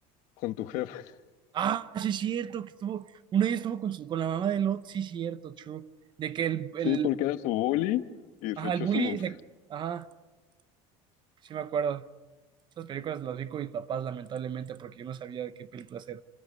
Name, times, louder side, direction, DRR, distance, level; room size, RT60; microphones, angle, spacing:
voice 1, 0.4-1.1 6.8-8.0 8.4-9.2, left 15 dB, 65° left, 1.2 m, -29 dB
voice 2, 1.5-5.9 6.2-7.1 8.6-9.4 9.7-10.0 11.4-12.0 12.8-16.2, right 9 dB, 35° right, 0.8 m, -32 dB
27.5 x 13.0 x 9.3 m
cardioid pair, 145°, 14 cm